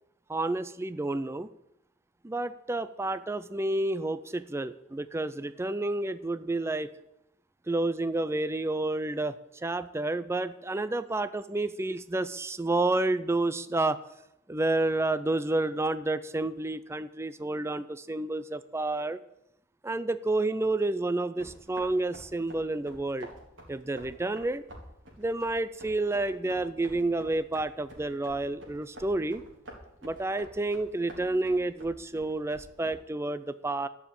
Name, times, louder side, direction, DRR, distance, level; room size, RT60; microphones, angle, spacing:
voice 1, 0.3-1.5 2.2-6.9 7.7-9.3 9.6-14.0 14.5-19.2 19.8-23.3 23.7-24.6 25.2-29.4 30.0-33.9, right 2 dB, 15° right, 13 dB, 0.4 m, -30 dB
sound 1, 21.4-32.9, right 1 dB, 80° right, 3.8 m, -49 dB
12.0 x 7.2 x 8.7 m, 0.82 s
head